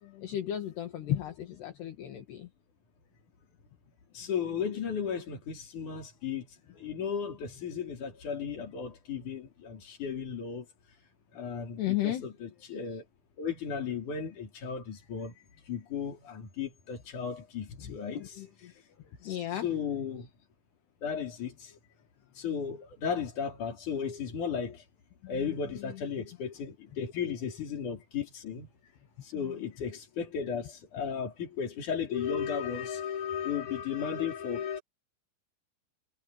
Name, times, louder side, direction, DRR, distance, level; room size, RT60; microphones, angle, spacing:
voice 1, 0.0-2.5 11.8-12.3 17.8-18.7 19.0-19.7 25.2-26.0 29.3-29.6, left 12 dB, 60° left, 3.9 m, -35 dB
voice 2, 4.1-6.5 6.7-10.7 11.3-13.0 13.4-15.3 15.7-18.2 19.2-19.4 19.6-20.3 21.0-21.7 22.3-24.8 25.3-28.7 29.2-34.8, left 7 dB, 40° left, 4.9 m, -35 dB
omnidirectional pair, 5.7 m